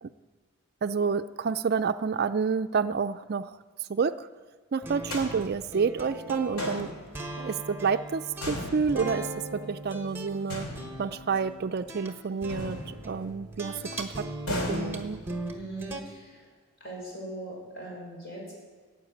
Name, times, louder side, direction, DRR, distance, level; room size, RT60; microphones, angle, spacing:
voice 1, 0.8-3.5 3.9-4.3 4.7-6.9 7.4-10.7 11.0-15.2, right 5 dB, 45° right, 11 dB, 0.4 m, -29 dB
sound 1, 4.8-16.0, right 1 dB, 10° right, 1.1 m, -39 dB
sound 2, 5.1-6.0 6.6-7.5 8.4-9.6 10.5-11.5 12.5-13.5 14.5-15.6, left 1 dB, 85° left, 2.6 m, -37 dB
voice 2, 15.5-16.5 16.8-18.5, right 1 dB, 50° left, -3 dB, 5.6 m, -40 dB
15.0 x 7.9 x 9.0 m, 1.5 s
head